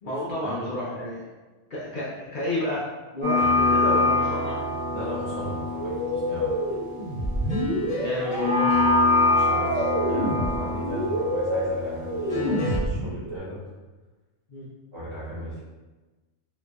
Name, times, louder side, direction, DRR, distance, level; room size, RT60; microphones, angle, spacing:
voice 1, 0.0-1.3 1.7-2.8 3.1-4.6 8.0-8.7 14.5-14.7, left 1 dB, 50° left, -7 dB, 0.7 m, -30 dB
sound 1, 3.2-12.8, left 2 dB, 5° left, 1.1 m, -25 dB
voice 2, 4.9-6.5 9.0-13.6 14.9-15.6, equal, 55° right, -10 dB, 1.9 m, -37 dB
sound 2, 5.7-13.4, equal, 40° right, 0.4 m, -28 dB
3.7 x 3.0 x 2.2 m, 1.2 s
omnidirectional pair, 1.2 m